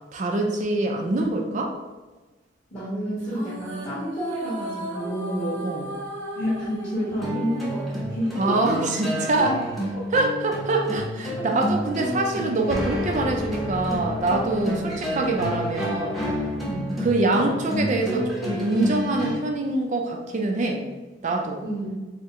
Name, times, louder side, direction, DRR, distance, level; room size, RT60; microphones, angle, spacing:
voice 1, 0.1-1.7 5.6-5.9 8.4-9.6 10.1-14.8 15.2-16.2 17.0-20.8 21.2-21.6, right 2 dB, 40° right, 2 dB, 0.4 m, -24 dB
voice 2, 2.7-5.7 6.3-8.9 11.3-11.5 14.6-14.8 16.6-16.9 21.6-21.9, equal, 35° left, -10 dB, 1.3 m, -30 dB
sound 1, 3.2-8.7, right 1 dB, 65° right, 1.0 m, -36 dB
sound 2, 7.1-19.3, equal, ahead, 0.7 m, -30 dB
4.4 x 2.1 x 3.6 m, 1.2 s
head